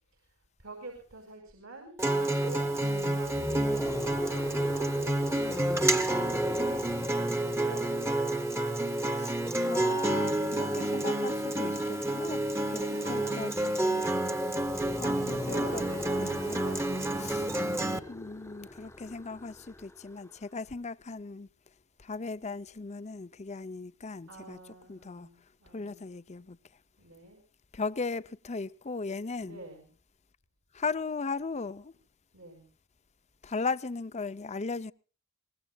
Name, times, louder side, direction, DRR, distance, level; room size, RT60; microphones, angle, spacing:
voice 1, 0.6-2.8 3.0-5.1 7.6-8.1 10.1-10.8 12.3-14.2 15.2-17.5 24.3-26.1 27.0-27.4 29.3-29.9 32.3-32.7, right 2 dB, 75° right, 5.5 m, -47 dB
Acoustic guitar, 2.0-18.0, right 1 dB, 15° right, 1.1 m, -29 dB
voice 2, 2.8-3.2 5.3-5.8 9.2-9.3 9.6-13.5 15.0-15.8 16.2-16.7 17.2-17.5 18.1-21.5 22.0-24.6 24.9-25.3 25.7-26.6 27.7-29.6 30.7-31.9 33.4-34.9, left 4 dB, 35° left, 0.6 m, -37 dB
sound 1, 3.2-8.4 14.6-20.3, left 1 dB, 15° left, 1.0 m, -41 dB
23.5 x 20.0 x 2.4 m
head